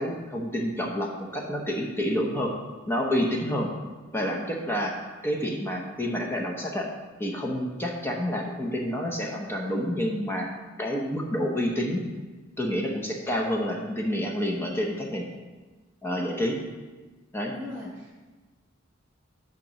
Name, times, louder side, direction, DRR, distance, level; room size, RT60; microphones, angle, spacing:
voice 1, 0.0-2.5 2.9-3.7 4.1-6.9 7.2-10.5 10.8-12.0 12.6-15.2 16.0-16.6 17.3-17.5, equal, 10° left, 0 dB, 0.7 m, -28 dB
voice 2, 17.5-18.2, left 2 dB, 10° right, -8 dB, 1.1 m, -39 dB
8.9 x 3.0 x 6.3 m, 1.3 s
head